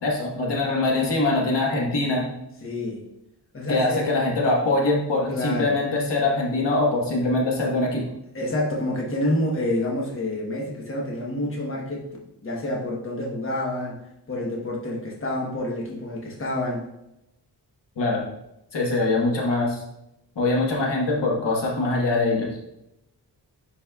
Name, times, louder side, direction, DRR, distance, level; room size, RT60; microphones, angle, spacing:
voice 1, 0.0-2.3 3.7-8.0 18.0-18.2 18.7-19.8 20.3-22.5, left 2 dB, 80° left, -2 dB, 1.5 m, -23 dB
voice 2, 2.6-3.0 3.5-4.1 5.3-5.7 8.3-12.0 12.4-14.0 14.3-16.8, left 1 dB, 30° left, -2 dB, 1.1 m, -28 dB
10.0 x 4.2 x 2.3 m, 0.87 s
wide cardioid pair, 140°, 41 cm